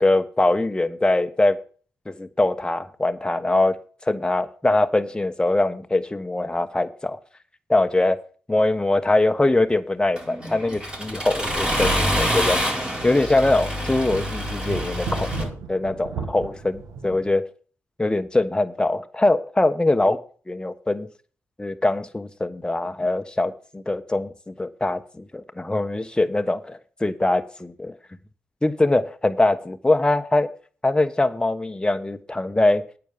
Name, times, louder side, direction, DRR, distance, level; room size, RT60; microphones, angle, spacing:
voice 1, 0.0-1.6 2.1-3.8 4.0-7.2 7.7-8.2 8.5-12.6 13.0-17.4 18.0-20.2 20.5-21.1 21.6-27.9 28.6-30.5 30.8-32.8, left 2 dB, 15° left, 9 dB, 1.2 m, -22 dB
sound 1, 8.6-8.8 9.1-9.2 10.1-11.6 11.9-12.0 12.6-17.3, right 5 dB, 90° right, 1.7 m, -36 dB
Accelerating revving vroom, 10.2-15.4, equal, 15° right, 4.4 m, -26 dB
9.1 x 7.0 x 7.3 m, 0.41 s
cardioid pair, 60°, 5 cm